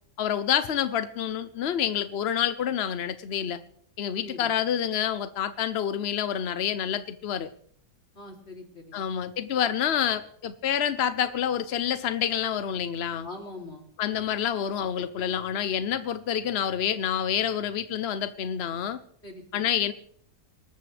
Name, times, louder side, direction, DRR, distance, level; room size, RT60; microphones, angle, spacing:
voice 1, 0.2-3.6 4.0-7.5 8.9-13.3 14.0-19.0 19.5-19.9, left 9 dB, 55° left, 11 dB, 0.7 m, -28 dB
voice 2, 4.1-4.5 8.2-9.1 13.2-13.9 19.2-19.6, left 2 dB, 40° left, 1 dB, 3.5 m, -42 dB
26.0 x 14.0 x 3.4 m, 0.62 s
omnidirectional pair, 1.8 m